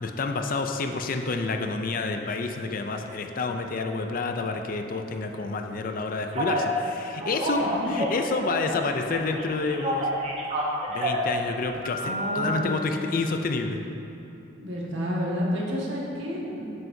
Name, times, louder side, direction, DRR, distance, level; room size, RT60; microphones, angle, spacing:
voice 1, 0.0-10.1 10.9-13.8, left 3 dB, 45° left, 5 dB, 0.4 m, -29 dB
Telephone, 6.3-6.7 7.2-8.8 9.1-11.3 11.8-12.5, equal, 30° right, 1.0 m, -29 dB
voice 2, 7.6-7.9 12.0-12.8 14.6-16.7, equal, 60° right, -4 dB, 1.6 m, -30 dB
9.7 x 9.1 x 2.7 m, 2.8 s
head